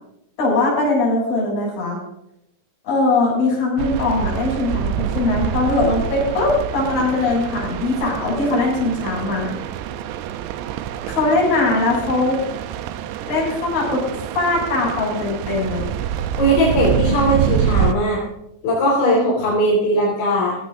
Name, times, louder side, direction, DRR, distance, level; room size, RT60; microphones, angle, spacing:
voice 1, 0.4-2.0 2.8-9.6 11.1-12.4 13.3-14.1 14.4-15.9, left 2 dB, 55° left, -5 dB, 9.1 m, -20 dB
sound 1, 3.8-17.9, right 9 dB, 80° right, 2.6 m, -26 dB
voice 2, 16.4-18.2 18.6-20.6, equal, 80° left, -5 dB, 6.9 m, -18 dB
18.0 x 17.5 x 2.6 m, 0.80 s
omnidirectional pair, 5.4 m